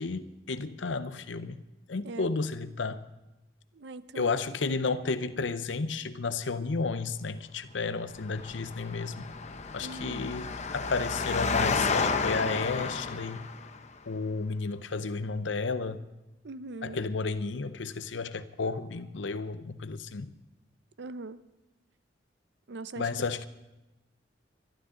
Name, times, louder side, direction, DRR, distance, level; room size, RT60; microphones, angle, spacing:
voice 1, 0.0-1.6 1.9-3.1 4.1-9.3 9.7-13.5 14.1-16.1 16.8-20.3 23.0-23.5, left 4 dB, 80° left, 0.7 m, -32 dB
voice 2, 3.7-4.4 9.8-10.3 16.4-17.0 21.0-21.4 22.7-23.1, right 3 dB, 65° right, 0.6 m, -41 dB
Engine, 8.1-13.8, left 4 dB, 40° left, 0.8 m, -31 dB
22.0 x 12.0 x 3.8 m
head